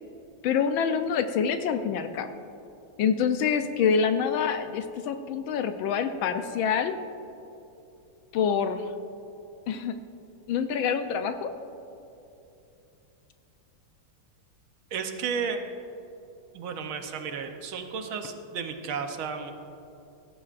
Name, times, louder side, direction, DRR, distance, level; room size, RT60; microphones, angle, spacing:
voice 1, 0.4-2.3 3.0-6.9 8.3-8.8 9.7-10.0 10.5-11.5, left 7 dB, 75° left, 9 dB, 1.3 m, -26 dB
voice 2, 14.9-15.6 16.5-19.5, right 6 dB, 75° right, 6 dB, 1.6 m, -33 dB
16.5 x 13.5 x 2.5 m, 2.9 s
omnidirectional pair, 2.4 m